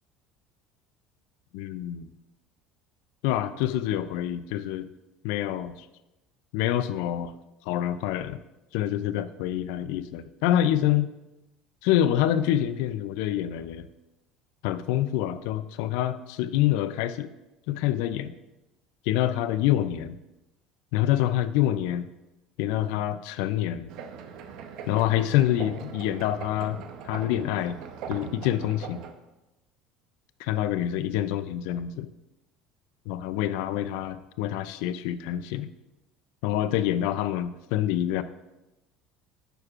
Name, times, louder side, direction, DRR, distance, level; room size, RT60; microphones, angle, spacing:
voice 1, 1.5-2.1 3.2-4.9 5.2-5.8 6.5-7.3 7.7-8.4 8.7-11.1 11.8-13.9 14.6-17.3 17.7-18.3 19.1-20.2 20.9-22.0 22.6-23.9 24.9-26.8 27.1-27.8 28.1-29.1 30.4-32.1 33.1-35.7 36.4-38.2, left 12 dB, 75° left, 14 dB, 0.4 m, -26 dB
sound 1, 23.9-29.1, right 7 dB, 60° right, 0.7 m, -40 dB
9.0 x 6.5 x 2.5 m, 0.98 s
cardioid pair, 140°, 0 cm